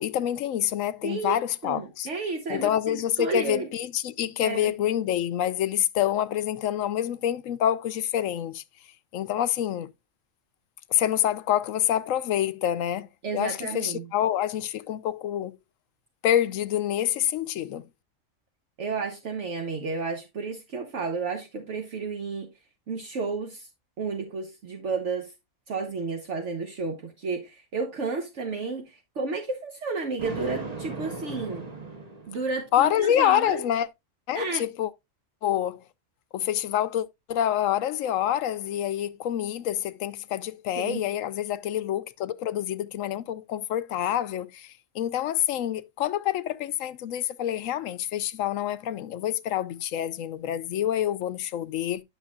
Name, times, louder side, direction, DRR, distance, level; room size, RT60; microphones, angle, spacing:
voice 1, 0.0-2.1 2.5-8.6 9.1-9.9 10.9-13.1 13.3-15.5 16.2-17.8 32.7-33.9 34.3-34.9 35.4-35.8 36.3-52.0, left 11 dB, 80° left, 1.0 m, -27 dB
voice 2, 1.0-1.4 1.6-3.7 4.4-4.7 13.2-14.1 18.8-22.5 22.9-23.7 24.0-25.3 25.7-31.7 32.3-33.7 34.3-34.7 40.7-41.0, right 4 dB, 65° right, 1.3 m, -32 dB
Thunder, 30.2-32.7, right 3 dB, 30° right, 1.3 m, -37 dB
10.0 x 6.4 x 2.3 m
omnidirectional pair, 1.4 m